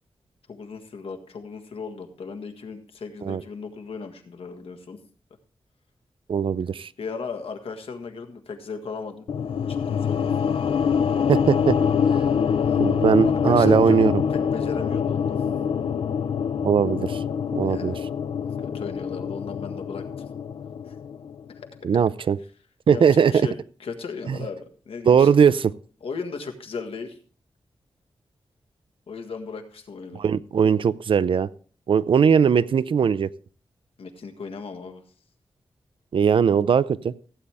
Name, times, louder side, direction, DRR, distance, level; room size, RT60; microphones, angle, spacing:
voice 1, 0.5-5.0 7.0-9.3 9.7-10.3 12.2-14.0 14.3-15.4 17.6-18.0 18.4-20.0 20.9-21.0 22.9-25.4 26.0-27.2 29.1-30.2 34.0-35.0, left 5 dB, 90° left, 6 dB, 1.6 m, -36 dB
voice 2, 6.3-6.9 11.3-11.8 12.8-14.2 16.6-17.2 17.6-18.0 21.8-22.4 22.9-23.5 24.3-24.4 25.1-25.7 30.1-31.5 31.9-33.3 36.1-37.1, right 7 dB, 65° right, 17 dB, 0.5 m, -19 dB
sound 1, 9.3-21.5, left 7 dB, 75° left, 0.5 m, -25 dB
15.5 x 8.7 x 3.5 m, 0.40 s
wide cardioid pair, 130°, 9 cm